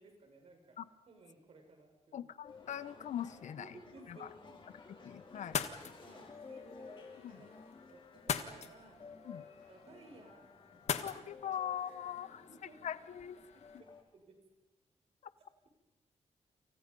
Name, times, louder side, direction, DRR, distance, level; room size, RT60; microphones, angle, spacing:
voice 1, 0.0-0.8 1.1-2.3 3.6-4.5 5.3-5.6 6.0-7.6 7.9-9.0 9.3-9.4 9.7-10.5 12.5-12.8 13.5-13.9 14.1-14.3, right 3 dB, 55° right, 3 dB, 6.3 m, -58 dB
voice 2, 2.1-3.7 4.1-4.3 5.0-5.6 7.2-7.3 9.2-9.4 10.9-12.5 12.8-13.4, left 10 dB, 85° left, 15 dB, 1.0 m, -41 dB
sound 1, 2.4-14.0, left 4 dB, 45° left, 4.9 m, -55 dB
sound 2, 5.4-13.8, left 7 dB, 65° left, 1.5 m, -43 dB
29.5 x 28.5 x 5.5 m, 0.95 s
wide cardioid pair, 170°, 12 cm